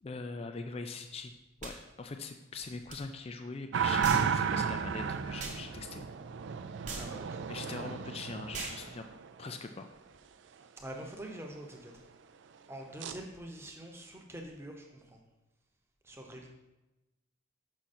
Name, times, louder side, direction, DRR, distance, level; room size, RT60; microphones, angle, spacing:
voice 1, 0.0-1.3 1.6-6.1 7.5-9.0 9.4-9.9, left 4 dB, 30° left, 7 dB, 0.3 m, -42 dB
sound 1, 1.6-1.8 2.9-3.0 4.0-4.3 5.4-5.6 6.9-7.1 8.5-8.8, right 3 dB, 35° right, 1.2 m, -40 dB
sound 2, 3.7-9.5 13.0-13.2, right 6 dB, 60° right, 0.4 m, -33 dB
voice 2, 6.9-7.9 10.8-11.9 12.7-15.2 16.0-16.5, right 1 dB, 15° right, 1 dB, 0.9 m, -45 dB
6.4 x 5.7 x 4.3 m, 1.0 s
head